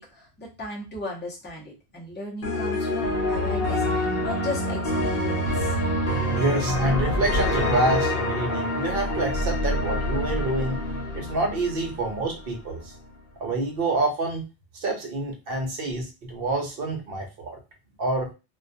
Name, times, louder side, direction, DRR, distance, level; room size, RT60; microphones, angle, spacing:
voice 1, 0.0-5.8, left 2 dB, 10° left, -3 dB, 0.6 m, -36 dB
sound 1, 2.4-12.5, left 1 dB, 65° left, 0.8 m, -26 dB
voice 2, 6.3-10.8 11.1-12.9 13.4-14.4 14.7-17.6 18.0-18.3, right 2 dB, 65° right, 3 dB, 0.8 m, -27 dB
sound 2, 8.8-11.4 11.7-11.8, right 1 dB, 30° right, 1.0 m, -34 dB
2.3 x 2.2 x 2.6 m, 0.28 s
omnidirectional pair, 1.1 m